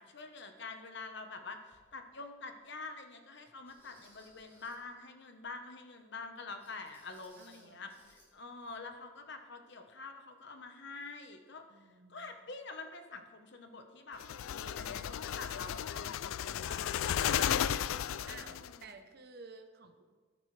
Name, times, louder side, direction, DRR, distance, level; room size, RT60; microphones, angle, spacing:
voice 1, 0.0-17.7 18.2-18.9, left 3 dB, 55° left, 6 dB, 1.0 m, -47 dB
sound 1, 1.7-1.8 2.5-2.6 3.6-4.9 6.6-8.3 8.6-8.7 9.2-9.3, equal, 10° left, 3.4 m, -64 dB
voice 2, 7.4-8.1 11.7-12.4 18.2-20.0, right 4 dB, 50° right, 6 dB, 0.8 m, -53 dB
sound 2, 14.2-18.8, left 9 dB, 80° left, 0.3 m, -34 dB
16.5 x 9.8 x 3.3 m, 1.4 s
head